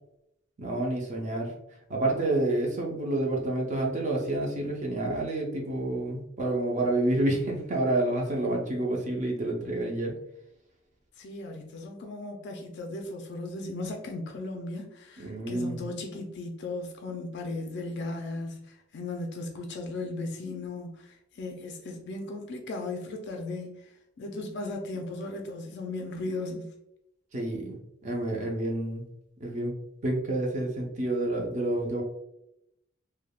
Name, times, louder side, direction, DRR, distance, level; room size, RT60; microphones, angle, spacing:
voice 1, 0.6-1.5 1.9-10.1 15.2-15.8 27.3-29.0 29.4-29.7 30.0-32.0, right 2 dB, 35° right, 0 dB, 0.5 m, -29 dB
voice 2, 11.2-23.8 24.2-26.7, left 2 dB, 60° left, 3 dB, 0.4 m, -36 dB
3.3 x 2.1 x 2.2 m, 0.81 s
head